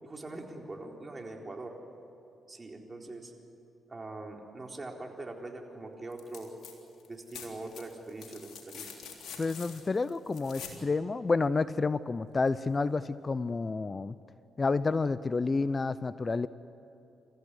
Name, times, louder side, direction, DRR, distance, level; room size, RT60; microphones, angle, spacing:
voice 1, 0.0-1.8 2.5-3.3 3.9-6.5 7.1-8.9, right 2 dB, 30° right, 1 dB, 4.1 m, -42 dB
sound 1, 6.1-6.7 7.0-10.8 12.5-12.6, left 6 dB, 65° left, 3.5 m, -46 dB
voice 2, 9.4-14.1 14.6-16.5, left 3 dB, 35° left, 16 dB, 0.6 m, -29 dB
27.5 x 15.0 x 9.8 m, 2.7 s
hypercardioid pair, 45°, 0 cm